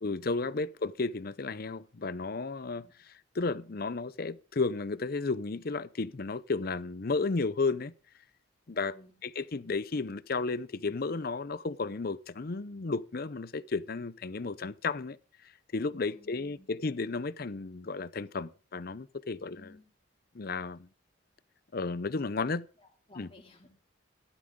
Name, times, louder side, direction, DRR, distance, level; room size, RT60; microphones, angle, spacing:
voice 1, 0.0-7.9 8.7-8.9 9.2-15.2 15.7-19.7 20.3-20.9 21.7-22.7 23.2-23.3, left 3 dB, 50° left, 0.6 m, -33 dB
voice 2, 8.7-9.1 16.0-16.7 19.4-19.9 22.8-23.7, left 2 dB, 30° left, 2.8 m, -56 dB
14.5 x 12.0 x 3.7 m
head